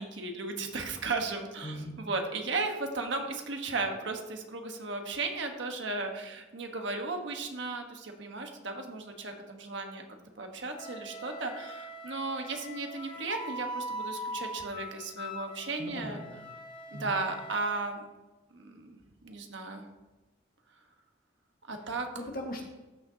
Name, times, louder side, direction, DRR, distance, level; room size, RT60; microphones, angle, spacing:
voice 1, 0.0-10.0 10.4-16.2 16.9-18.0 18.5-19.0 19.2-19.9 21.7-22.1, right 3 dB, 70° right, 4 dB, 1.2 m, -35 dB
voice 2, 1.6-2.0 15.8-16.4 16.9-17.2 22.2-22.7, left 1 dB, 50° left, 0 dB, 1.6 m, -39 dB
Wind instrument woodwind instrument, 10.7-17.8, equal, 25° left, 0.8 m, -42 dB
14.0 x 6.4 x 2.8 m, 1.1 s
head